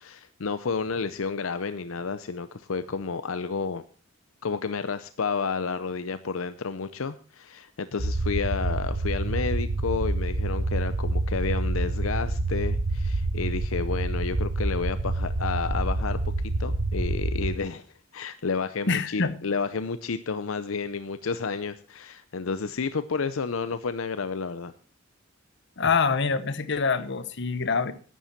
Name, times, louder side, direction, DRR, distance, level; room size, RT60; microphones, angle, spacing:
voice 1, 0.0-3.8 4.4-16.2 16.6-17.9 18.1-24.7, left 5 dB, 80° left, 0.6 m, -31 dB
sound 1, 8.0-17.6, right 2 dB, 65° right, 1.0 m, -27 dB
voice 2, 18.9-19.4 25.8-27.9, left 4 dB, 60° left, 1.0 m, -25 dB
11.0 x 10.0 x 5.8 m
head